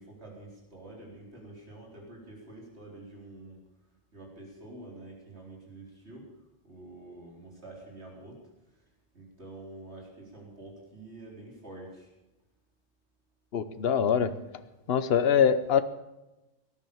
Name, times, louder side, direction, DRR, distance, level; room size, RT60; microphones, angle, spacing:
voice 1, 0.0-3.6 4.1-6.3 6.6-8.4 9.1-12.1, right 2 dB, 55° right, -1 dB, 4.4 m, -47 dB
voice 2, 13.5-14.3 14.9-15.8, left 7 dB, 55° left, 12 dB, 1.1 m, -23 dB
18.0 x 11.0 x 7.1 m, 1.0 s
omnidirectional pair, 1.3 m